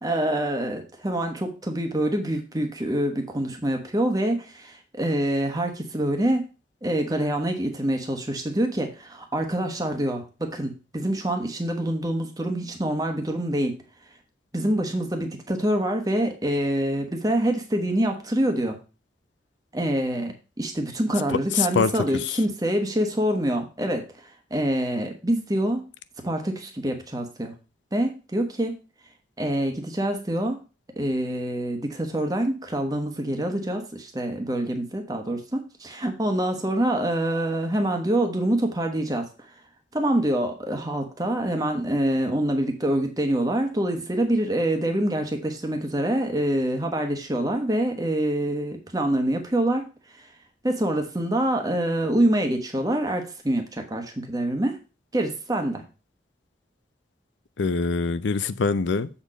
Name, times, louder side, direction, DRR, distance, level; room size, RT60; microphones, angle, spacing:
voice 1, 0.0-6.4 6.8-13.7 14.5-18.8 19.7-24.0 24.5-25.8 26.2-27.5 27.9-28.7 29.4-30.6 31.0-39.3 39.9-49.8 50.2-50.3 50.6-54.8 55.1-55.8, right 1 dB, 20° right, 1.1 m, -25 dB
voice 2, 21.6-22.4 57.6-59.1, left 4 dB, 90° left, 0.5 m, -24 dB
7.1 x 4.4 x 4.9 m
head